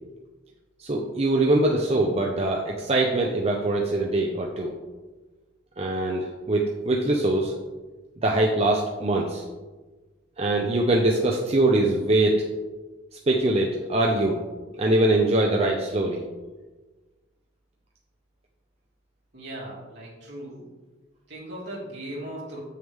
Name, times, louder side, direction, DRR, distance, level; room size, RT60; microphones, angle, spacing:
voice 1, 0.8-4.7 5.8-7.5 8.2-9.4 10.4-12.5 13.3-14.4 14.8-16.2, right 2 dB, 35° right, 0 dB, 0.7 m, -23 dB
voice 2, 19.3-20.6 21.3-22.6, right 1 dB, 60° right, -6 dB, 2.8 m, -38 dB
8.5 x 6.5 x 3.6 m, 1.2 s
head